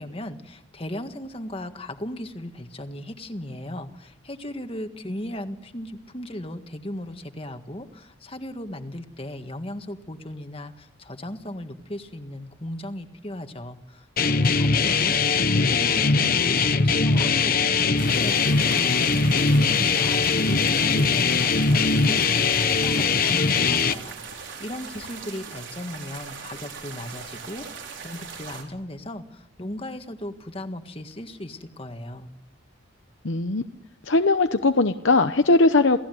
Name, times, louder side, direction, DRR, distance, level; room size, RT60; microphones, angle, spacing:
voice 1, 0.0-32.3, left 1 dB, 30° left, 7 dB, 1.7 m, -37 dB
sound 1, 14.2-23.9, left 4 dB, 45° left, 1.0 m, -21 dB
sound 2, 18.0-28.6, right 5 dB, 65° right, 5.1 m, -39 dB
voice 2, 33.2-33.6 34.1-36.0, left 3 dB, 65° left, 9 dB, 0.9 m, -19 dB
29.0 x 18.0 x 9.4 m, 0.94 s
head